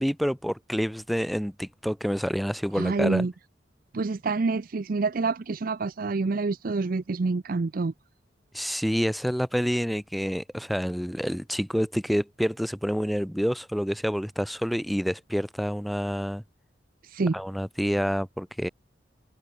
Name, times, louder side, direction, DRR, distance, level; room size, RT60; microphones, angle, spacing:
voice 1, 0.0-3.3 8.5-16.4 17.3-18.7, equal, ahead, 3.8 m, -28 dB
voice 2, 2.8-3.3 3.9-7.9 17.0-17.3, right 3 dB, 50° right, 0.5 m, -27 dB
head